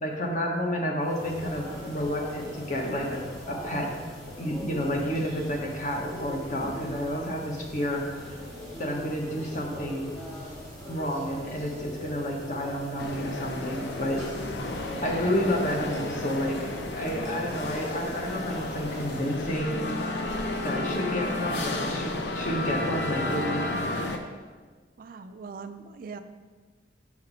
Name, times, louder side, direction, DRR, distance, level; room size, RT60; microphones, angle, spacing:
voice 1, 0.0-3.9 4.4-8.0 8.8-10.1 10.9-14.2 15.0-19.9 20.6-23.9, equal, 45° left, 0 dB, 1.0 m, -30 dB
sound 1, 1.0-19.6, equal, 20° left, 2.0 m, -41 dB
sound 2, 13.0-24.2, left 2 dB, 65° left, 0.6 m, -32 dB
voice 2, 25.0-26.2, right 5 dB, 50° right, 9 dB, 0.4 m, -41 dB
6.0 x 5.3 x 4.0 m, 1.4 s
head